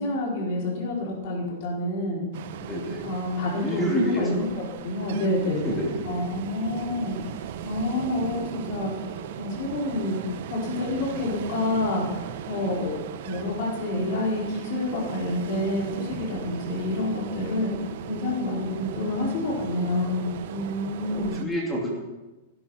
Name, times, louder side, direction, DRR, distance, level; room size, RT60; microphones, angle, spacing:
voice 1, 0.0-2.2 3.0-8.9 9.4-10.2 10.5-12.1 12.4-17.7 18.1-21.4, left 1 dB, 40° left, -3 dB, 4.6 m, -28 dB
Ocean, 2.3-21.4, right 10 dB, 45° right, 0.8 m, -38 dB
voice 2, 2.6-3.0 3.5-4.4 5.6-5.9 12.5-12.7 21.0-22.0, equal, 10° left, -2 dB, 3.0 m, -28 dB
15.5 x 11.5 x 5.9 m, 1.1 s
supercardioid pair, 180°, 0 cm